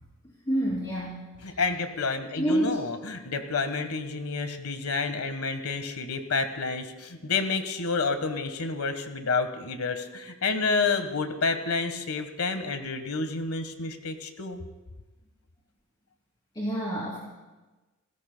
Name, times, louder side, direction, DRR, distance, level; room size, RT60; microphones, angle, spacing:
voice 1, 0.5-1.2 2.4-2.8 16.5-17.2, right 1 dB, 20° left, -5 dB, 2.8 m, -27 dB
voice 2, 1.4-14.6, left 4 dB, 90° left, 8 dB, 1.4 m, -29 dB
29.5 x 16.5 x 2.2 m, 1.2 s
head